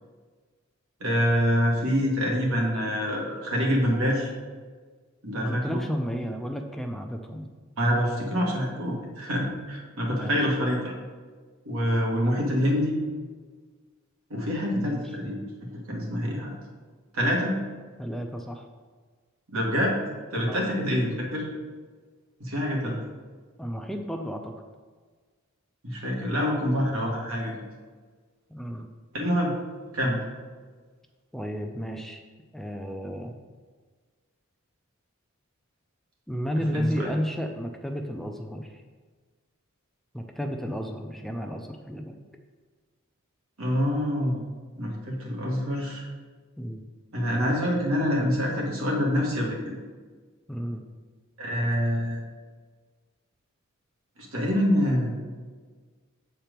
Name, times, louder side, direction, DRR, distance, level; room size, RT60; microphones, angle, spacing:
voice 1, 1.0-4.3 5.2-5.8 7.8-10.9 11.7-13.0 14.3-15.4 15.9-16.5 17.1-17.6 19.5-20.0 20.3-21.5 22.4-23.0 25.8-27.5 29.1-29.5 29.9-30.2 36.6-37.1 43.6-44.4 44.8-46.1 47.1-49.6 51.4-52.2 54.2-55.1, equal, 85° right, -1 dB, 1.8 m, -26 dB
voice 2, 5.4-7.5 10.0-10.4 14.7-15.0 18.0-18.7 20.5-20.6 23.6-24.5 28.5-28.9 31.3-32.2 32.5-33.4 36.3-38.8 40.1-42.2 46.6-46.8 50.5-50.8, equal, ahead, 4 dB, 0.4 m, -32 dB
7.6 x 4.4 x 5.2 m, 1.5 s
head